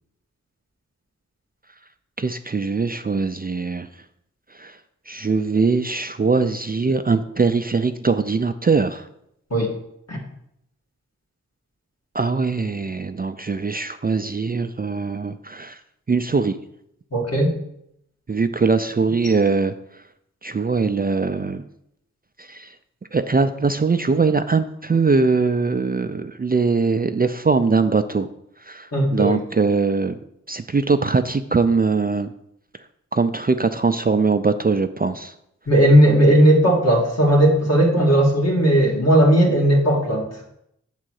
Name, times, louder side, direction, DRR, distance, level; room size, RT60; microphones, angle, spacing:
voice 1, 2.2-3.9 4.6-4.8 5.1-9.1 12.1-15.8 16.1-16.6 18.3-19.7 20.4-21.6 22.4-22.7 23.1-28.3 28.7-30.2 30.5-32.3 33.1-35.3, right 4 dB, 30° right, 9 dB, 0.4 m, -21 dB
voice 2, 17.1-17.5 28.9-29.4 35.7-40.3, right 1 dB, 55° left, -1 dB, 2.1 m, -16 dB
7.4 x 3.8 x 6.3 m, 0.76 s
cardioid pair, 40°, 31 cm